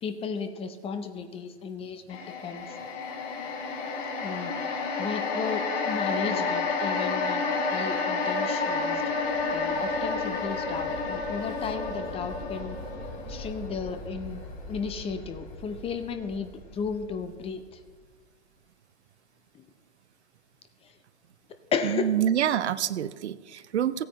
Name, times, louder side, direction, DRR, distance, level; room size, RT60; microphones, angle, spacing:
voice 1, 0.0-2.8 4.2-9.0 9.5-12.8 13.3-14.4 14.7-17.8 19.5-19.6 20.8-21.0 21.5-22.1, left 5 dB, 15° left, 8 dB, 0.6 m, -34 dB
sound 1, 2.1-16.4 16.8-16.9, left 4 dB, 35° left, 3.7 m, -31 dB
voice 2, 21.8-24.1, right 10 dB, 70° right, 15 dB, 0.6 m, -27 dB
16.0 x 9.2 x 3.1 m, 1.4 s
hypercardioid pair, 115°, 34 cm